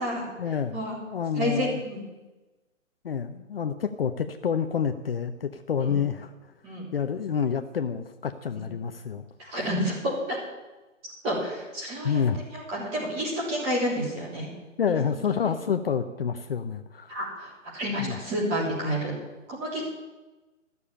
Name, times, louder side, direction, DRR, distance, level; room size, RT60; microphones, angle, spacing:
voice 1, 0.4-1.8 3.0-6.3 6.9-9.2 12.0-12.4 14.8-17.2 18.0-18.2, left 7 dB, 50° left, 7 dB, 0.7 m, -28 dB
voice 2, 1.3-2.0 5.8-6.0 6.6-6.9 8.5-8.6 9.4-10.4 11.2-12.2 12.5-14.5 17.1-19.1 19.5-19.8, equal, 15° right, -4 dB, 3.2 m, -29 dB
14.0 x 6.9 x 8.6 m, 1.1 s
hypercardioid pair, 165°, 39 cm